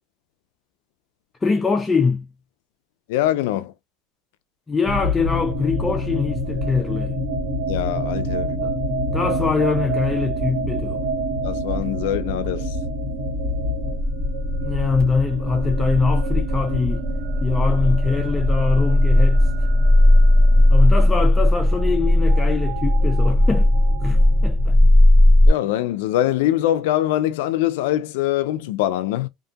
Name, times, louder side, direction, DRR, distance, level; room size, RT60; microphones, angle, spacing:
voice 1, 1.4-2.3 4.7-7.1 8.6-8.7 9.1-11.0 14.6-17.1 17.4-19.5 20.7-23.7 24.0-24.8, left 4 dB, 15° left, 0.3 m, -23 dB
voice 2, 3.1-3.7 7.7-8.6 11.4-12.8 25.5-29.3, left 13 dB, 90° left, 0.3 m, -23 dB
sound 1, 4.9-24.7, equal, 80° right, 1.4 m, -28 dB
sound 2, 13.6-25.5, left 1 dB, 20° right, 0.6 m, -17 dB
2.7 x 2.6 x 2.3 m
supercardioid pair, 130°, 0 cm